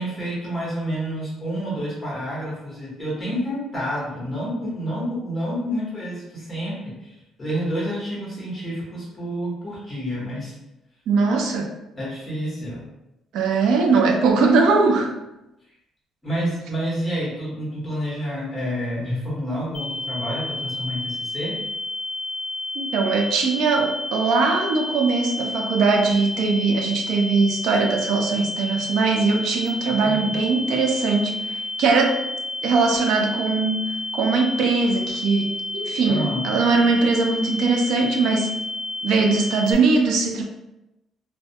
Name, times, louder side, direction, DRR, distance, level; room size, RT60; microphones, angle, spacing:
voice 1, 0.0-10.5 11.9-12.8 16.2-21.6 30.0-30.4 36.1-36.9, equal, 10° left, -6 dB, 0.9 m, -29 dB
voice 2, 11.1-11.7 13.3-15.1 22.8-32.2 32.6-38.5 39.0-40.4, right 4 dB, 65° right, 2 dB, 0.4 m, -21 dB
sound 1, 19.7-39.7, left 2 dB, 65° left, 0.4 m, -31 dB
2.2 x 2.1 x 2.7 m, 0.93 s
cardioid pair, 180°, 0 cm